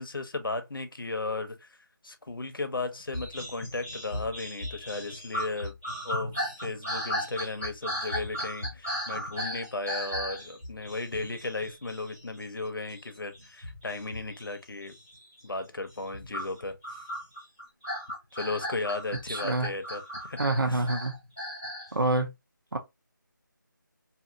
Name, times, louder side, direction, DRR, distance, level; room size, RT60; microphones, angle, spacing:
voice 1, 0.0-1.8 2.0-5.8 6.0-14.9 15.4-16.8 18.3-20.9, left 3 dB, 90° left, 0.9 m, -35 dB
sound 1, 3.1-12.6 12.8-14.5 14.8-15.3 15.9-21.9, equal, 10° right, 1.2 m, -36 dB
voice 2, 19.3-19.7 20.4-21.1 21.9-22.3 22.7-22.8, right 2 dB, 85° right, 1.0 m, -26 dB
2.8 x 2.7 x 2.6 m
figure-of-eight pair, 180°, 11 cm